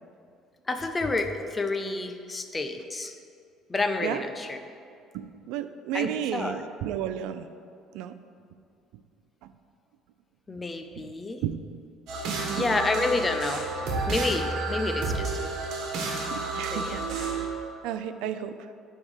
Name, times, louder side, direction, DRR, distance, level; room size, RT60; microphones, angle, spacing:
voice 1, 0.7-3.1 3.7-4.6 5.9-6.6 10.5-11.4 12.6-13.7 14.0-15.5 16.7-17.0, left 3 dB, 15° left, 6 dB, 0.5 m, -29 dB
voice 2, 5.1-7.5 7.9-8.1 9.4-9.5 10.9-11.1 11.4-11.6 12.3-12.9 14.4-14.5 15.1-15.2 16.3-17.0 17.3-17.4 17.8-18.7, right 10 dB, 85° right, 10 dB, 0.4 m, -33 dB
sound 1, 12.1-17.5, right 3 dB, 60° right, 1.4 m, -31 dB
8.4 x 3.6 x 6.4 m, 2.4 s
cardioid pair, 150°, 0 cm